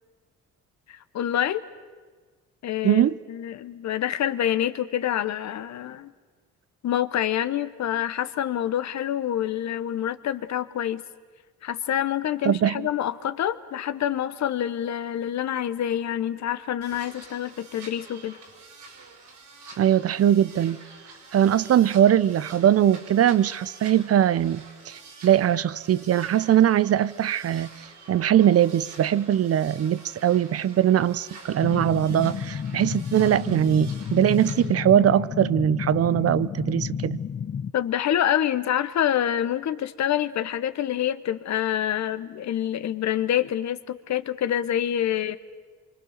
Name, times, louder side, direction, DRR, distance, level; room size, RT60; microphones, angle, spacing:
voice 1, 0.9-1.6 2.6-6.1 6.8-11.0 11.6-18.4 37.7-45.4, left 11 dB, 65° left, 1.1 m, -27 dB
voice 2, 2.8-3.2 12.4-12.8 19.8-20.8 21.3-27.7 28.1-37.2, right 10 dB, 50° right, 0.6 m, -21 dB
sound 1, 16.8-34.6, right 3 dB, 75° right, 4.8 m, -47 dB
sound 2, 31.6-37.7, left 7 dB, 35° left, 0.7 m, -31 dB
26.0 x 24.5 x 6.6 m
cardioid pair, 90°, 30 cm